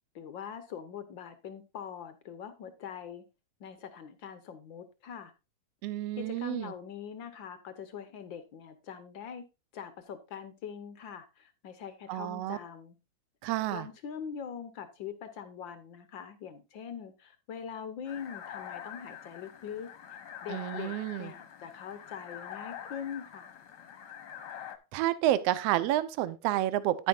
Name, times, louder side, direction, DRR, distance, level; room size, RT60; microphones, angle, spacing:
voice 1, 0.1-3.2 3.6-5.3 6.2-9.4 9.7-13.0 13.7-23.5, left 7 dB, 80° left, 10 dB, 1.0 m, -43 dB
voice 2, 5.8-6.7 12.1-12.6 13.4-13.9 20.5-21.3 24.9-27.1, right 13 dB, 70° right, 14 dB, 1.6 m, -30 dB
sound 1, 18.0-24.8, left 9 dB, 55° left, 1.2 m, -45 dB
10.5 x 10.0 x 2.5 m, 0.27 s
omnidirectional pair, 3.4 m